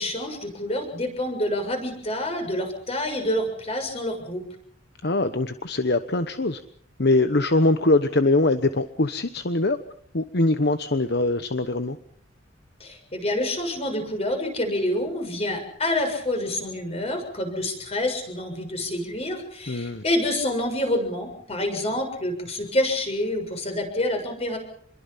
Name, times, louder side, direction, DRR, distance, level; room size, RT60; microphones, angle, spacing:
voice 1, 0.0-4.4 12.8-24.6, left 1 dB, 30° left, 5 dB, 6.9 m, -27 dB
voice 2, 5.0-6.6 7.0-9.8 10.1-12.0 19.7-20.0, left 2 dB, 55° left, 10 dB, 1.1 m, -22 dB
28.0 x 22.5 x 5.8 m, 0.63 s
head